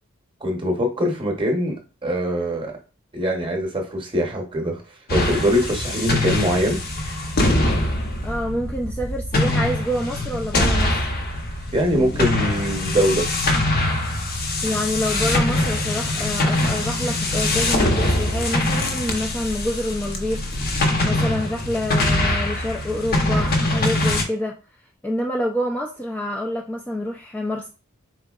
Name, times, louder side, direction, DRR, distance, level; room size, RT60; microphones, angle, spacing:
voice 1, 0.4-2.7 3.1-4.8 5.1-6.8 11.7-13.3, equal, 25° right, 2 dB, 0.8 m, -22 dB
sound 1, 5.1-24.2, left 1 dB, 45° left, 0.8 m, -23 dB
voice 2, 8.2-11.0 11.9-12.3 14.6-20.4 21.0-24.6 25.0-27.7, left 1 dB, 10° left, 1 dB, 0.3 m, -27 dB
4.4 x 3.8 x 2.3 m, 0.34 s
head